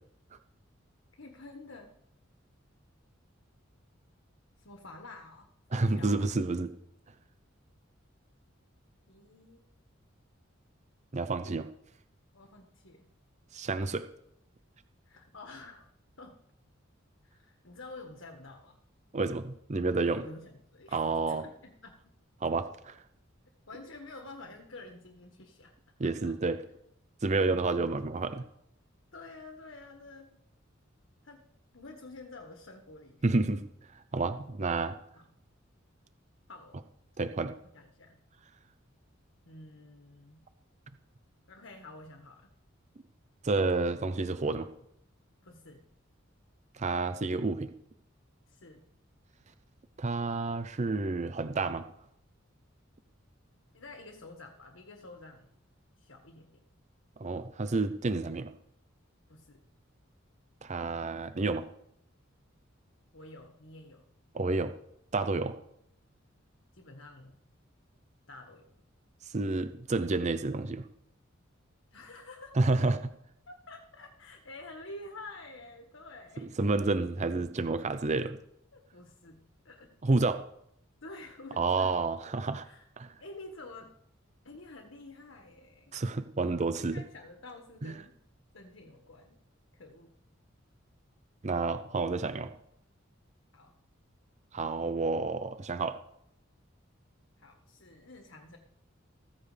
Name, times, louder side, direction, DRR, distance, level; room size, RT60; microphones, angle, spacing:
voice 1, 1.2-1.9 4.6-6.2 9.1-9.6 12.3-13.1 15.0-15.9 16.2-16.4 17.2-18.8 20.0-21.9 23.7-25.7 26.0-26.3 29.1-30.3 31.2-31.4 31.7-33.3 35.1-35.3 36.5-36.8 37.7-38.2 39.5-40.4 41.5-42.5 45.4-45.8 48.5-48.8 53.7-55.5 56.0-56.6 59.3-59.6 63.1-64.0 65.3-65.5 66.7-67.4 68.3-68.6 71.9-72.6 73.5-76.7 77.8-77.9 78.7-80.0 81.0-82.0 82.6-82.9 83.2-83.9 84.4-85.9 86.9-88.1 88.5-89.4 89.8-90.1 93.5-93.7 97.4-98.6, left 2 dB, 75° left, 3 dB, 1.6 m, -49 dB
voice 2, 5.7-6.7 11.1-11.7 13.5-14.0 19.1-20.2 20.9-21.4 22.4-23.0 26.0-26.6 27.2-28.4 33.2-33.6 34.1-35.0 37.2-37.5 43.4-44.7 46.8-47.7 50.0-51.9 57.2-58.5 60.6-61.7 64.3-64.7 65.1-65.5 69.3-70.8 72.6-73.0 76.4-78.4 80.0-80.4 81.6-82.7 83.0-83.1 85.9-87.0 87.8-87.9 91.4-92.5 94.5-96.0, right 3 dB, 35° right, 11 dB, 0.6 m, -29 dB
15.5 x 14.5 x 3.4 m, 0.75 s
head